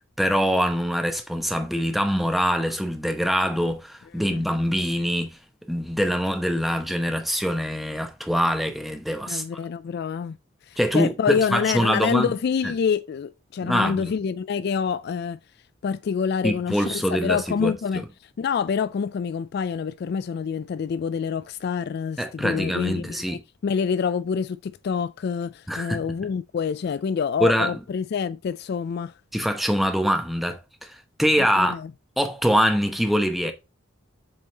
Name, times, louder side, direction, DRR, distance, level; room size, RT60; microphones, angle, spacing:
voice 1, 0.2-5.4 5.7-9.4 10.8-12.3 13.6-14.1 16.4-18.0 22.2-23.4 25.7-26.0 27.4-27.7 29.3-31.8 32.2-33.5, equal, ahead, 0.9 m, -24 dB
voice 2, 9.3-10.4 10.7-15.4 15.8-18.0 18.4-29.1 31.4-31.9 33.4-33.5, left 6 dB, 55° left, 0.3 m, -27 dB
7.7 x 3.6 x 4.0 m
head